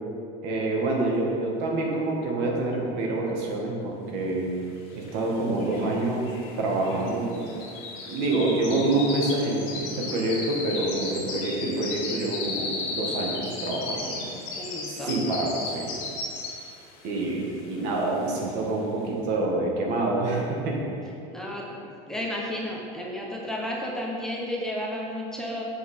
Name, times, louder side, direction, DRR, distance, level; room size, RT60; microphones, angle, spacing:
voice 1, 0.4-4.6 4.9-7.5 8.1-14.2 14.9-15.9 17.0-20.8, right 2 dB, 70° right, -1 dB, 1.9 m, -27 dB
sound 1, 5.1-5.2 5.4-16.8 17.2-17.5 18.0-18.1, left 3 dB, 85° left, 2.0 m, -35 dB
voice 2, 14.6-15.2 21.3-21.8 22.1-25.6, left 1 dB, 5° left, -3 dB, 1.0 m, -32 dB
7.4 x 5.8 x 5.6 m, 2.5 s
cardioid pair, 150°, 17 cm